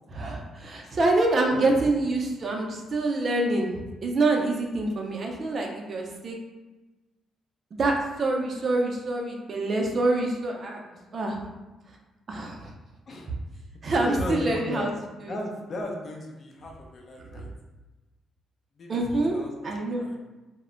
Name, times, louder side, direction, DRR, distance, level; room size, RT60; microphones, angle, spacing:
voice 1, 0.1-6.4 7.8-10.8 11.1-11.5 12.3-12.7 13.8-14.9 15.2-15.4 17.2-17.4 18.9-19.4 19.6-20.1, right 2 dB, 45° right, 1 dB, 0.5 m, -26 dB
voice 2, 14.0-14.9 15.3-17.5 18.8-19.5 20.0-20.2, left 2 dB, 50° left, 0 dB, 0.5 m, -36 dB
2.1 x 2.0 x 3.7 m, 1.1 s
cardioid pair, 90°, 0 cm